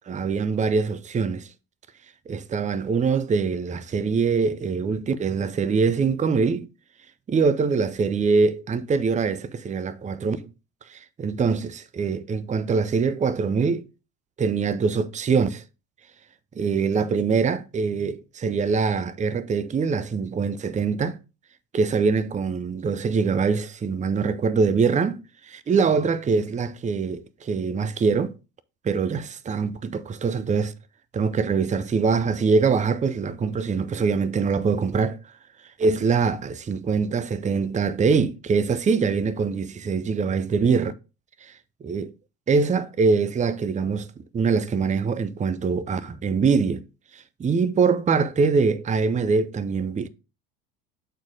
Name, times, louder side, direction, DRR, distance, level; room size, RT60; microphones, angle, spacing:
voice 1, 0.1-1.5 2.3-6.7 7.3-10.4 10.9-13.8 14.4-15.6 16.6-21.2 21.7-25.2 25.5-28.3 28.8-30.7 31.1-35.2 35.8-40.9 41.4-41.5 41.8-42.1 42.5-44.1 44.3-46.8 47.1-50.1, right 5 dB, 20° right, 0.6 m, -23 dB
7.6 x 4.5 x 3.7 m
hypercardioid pair, 75°, 41 cm